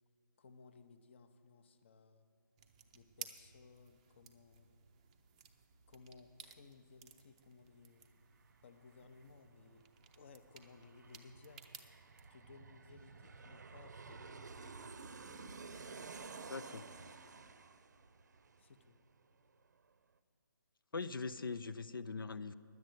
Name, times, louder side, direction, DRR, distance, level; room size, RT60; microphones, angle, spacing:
voice 1, 0.4-2.2 2.9-4.7 5.9-8.1 8.6-9.9 10.1-11.7 12.3-14.8 18.6-19.0, left 4 dB, 35° left, 9 dB, 0.6 m, -60 dB
sound 1, 2.6-12.3, right 8 dB, 20° right, 0.5 m, -57 dB
Aircraft, 7.7-7.8 8.0-19.4 19.7-19.8, right 4 dB, 55° right, 0.6 m, -53 dB
voice 2, 16.5-16.9 20.9-22.5, left 4 dB, 85° left, 12 dB, 0.5 m, -41 dB
10.5 x 7.9 x 9.1 m, 2.5 s
figure-of-eight pair, 160°, 11 cm